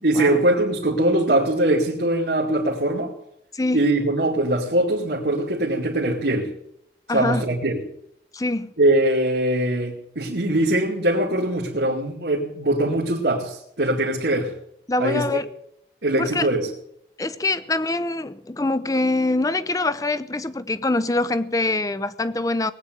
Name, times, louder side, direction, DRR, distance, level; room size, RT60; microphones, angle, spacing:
voice 1, 0.0-3.1 3.7-6.5 7.1-7.8 8.8-14.5 15.0-15.4 16.0-16.7, right 1 dB, 75° right, 2.4 m, -22 dB
voice 2, 3.5-3.9 7.1-7.4 8.3-8.7 14.9-15.5 16.2-16.5 17.2-22.7, left 2 dB, 20° left, 0.6 m, -24 dB
19.0 x 8.9 x 8.0 m
head